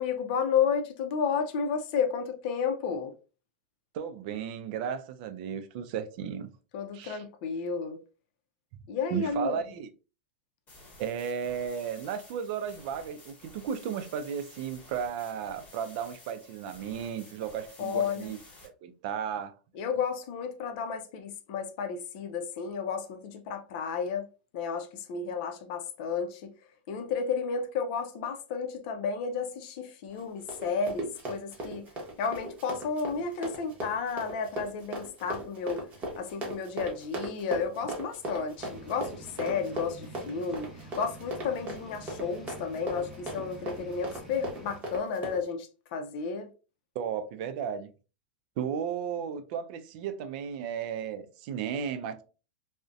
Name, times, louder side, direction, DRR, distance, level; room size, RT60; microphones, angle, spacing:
voice 1, 0.0-3.1 6.7-8.0 8.9-9.6 17.8-18.3 19.7-24.3 24.5-26.5 26.9-31.9 32.2-35.8 36.2-46.5, left 6 dB, 55° left, 0.5 m, -32 dB
voice 2, 3.9-6.5 6.9-7.2 9.1-9.9 11.0-18.4 18.6-19.5 47.0-47.9 48.6-52.2, right 8 dB, 55° right, 0.4 m, -34 dB
sound 1, 10.7-18.7, left 2 dB, 30° left, 1.3 m, -53 dB
Run, 30.1-45.4, right 1 dB, 30° right, 0.8 m, -38 dB
sound 2, 38.6-44.8, right 1 dB, 5° right, 1.0 m, -48 dB
2.5 x 2.1 x 2.3 m
hypercardioid pair, 120°, 6 cm